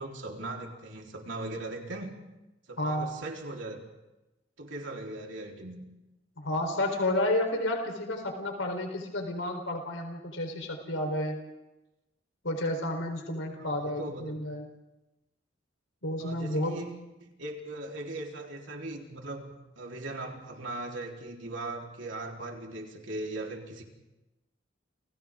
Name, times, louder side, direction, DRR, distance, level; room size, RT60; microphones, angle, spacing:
voice 1, 0.0-2.2 2.7-3.8 4.6-5.8 13.6-14.4 16.2-16.9 17.4-23.8, right 2 dB, 70° right, 0 dB, 3.9 m, -39 dB
voice 2, 2.8-3.1 6.4-11.4 12.4-14.6 16.0-16.8, left 1 dB, 85° left, 3 dB, 4.1 m, -31 dB
29.5 x 29.5 x 3.8 m, 1.0 s
head